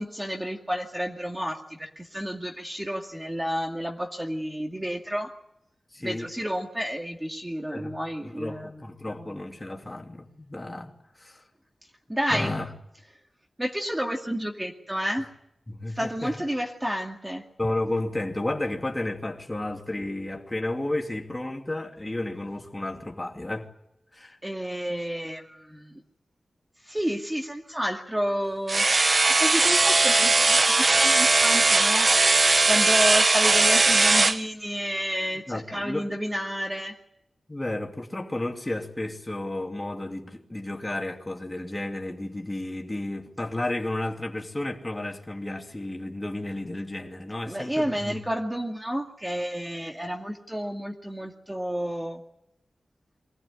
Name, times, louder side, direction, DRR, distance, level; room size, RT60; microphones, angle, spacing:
voice 1, 0.0-5.3 6.0-8.8 9.2-9.4 12.1-12.6 13.6-15.3 15.9-17.4 24.4-26.0 26.8-28.9 29.4-32.1 32.7-37.0 47.5-52.2, equal, 10° right, 2.2 m, -30 dB
voice 2, 5.9-6.3 7.7-7.9 8.2-10.9 11.2-11.4 12.3-12.7 15.7-16.3 17.6-23.7 24.1-24.4 35.5-36.1 37.5-48.2, left 1 dB, 20° left, 2.9 m, -32 dB
sound 1, 28.7-34.4, right 3 dB, 40° right, 0.9 m, -19 dB
24.5 x 19.0 x 9.8 m
wide cardioid pair, 115°, 0 cm